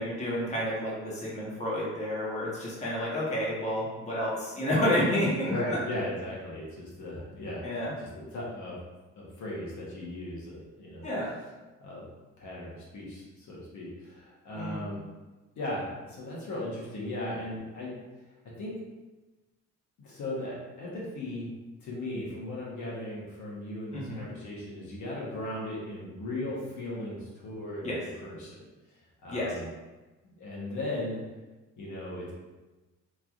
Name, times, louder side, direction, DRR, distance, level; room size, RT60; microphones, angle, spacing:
voice 1, 0.0-5.8 7.6-7.9 11.0-11.3 14.5-14.8 23.9-24.2 27.8-28.0 29.3-29.5, left 1 dB, 25° left, -6 dB, 1.0 m, -30 dB
voice 2, 5.5-8.8 9.2-11.1 11.8-12.0 12.4-15.0 15.6-17.9 18.6-18.7 20.0-21.5 21.8-27.9 28.2-28.6 29.2-29.7 30.2-31.2 31.8-32.3, left 1 dB, 70° left, -5 dB, 0.9 m, -37 dB
3.1 x 2.4 x 2.4 m, 1.2 s
cardioid pair, 90°, 30 cm